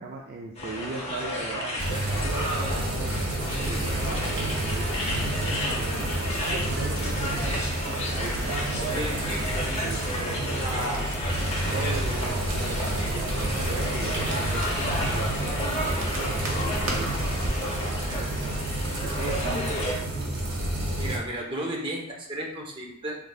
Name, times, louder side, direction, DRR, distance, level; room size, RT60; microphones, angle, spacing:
voice 1, 0.0-3.2 3.6-7.6 8.1-9.4 9.8-11.1 11.7-18.6 19.0-20.2, right 3 dB, 45° right, -1 dB, 0.4 m, -38 dB
sound 1, 0.6-19.9, left 1 dB, 30° left, 0.8 m, -32 dB
sound 2, 1.8-21.2, right 1 dB, 80° right, 1.4 m, -30 dB
voice 2, 8.8-9.2 10.6-11.2 12.1-12.4 20.9-23.2, right 1 dB, 25° right, -2 dB, 0.8 m, -33 dB
Crackle, 11.8-19.8, right 1 dB, 65° right, 1.1 m, -38 dB
4.8 x 3.3 x 2.4 m, 0.84 s
head